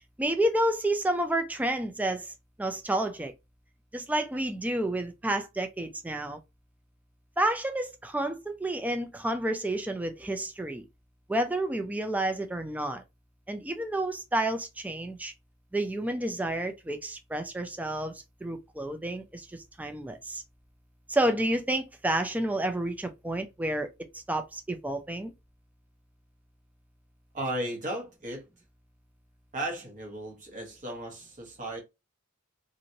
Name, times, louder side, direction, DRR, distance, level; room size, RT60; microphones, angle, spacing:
voice 1, 0.2-3.3 3.9-6.4 7.4-10.8 11.3-13.0 13.5-15.3 15.7-20.4 21.1-23.9 24.1-25.3, right 1 dB, 5° right, 0.4 m, -30 dB
voice 2, 27.3-28.4 29.5-31.8, right 1 dB, 40° right, 1.2 m, -35 dB
3.0 x 2.5 x 2.7 m
head